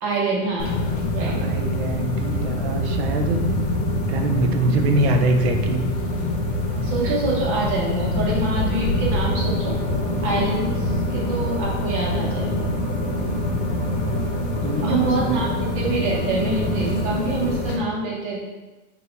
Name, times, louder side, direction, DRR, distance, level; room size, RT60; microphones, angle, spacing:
voice 1, 0.0-0.8 1.1-1.4 6.7-9.8 10.2-12.7 14.8-18.4, right 3 dB, 35° right, -4 dB, 1.3 m, -26 dB
sound 1, 0.6-17.8, left 1 dB, 45° left, 1.3 m, -24 dB
voice 2, 1.2-3.4 4.1-5.9 7.0-7.2 14.6-15.1, right 2 dB, 55° right, 5 dB, 0.7 m, -23 dB
4.0 x 2.9 x 4.0 m, 1.2 s
supercardioid pair, 140°, 37 cm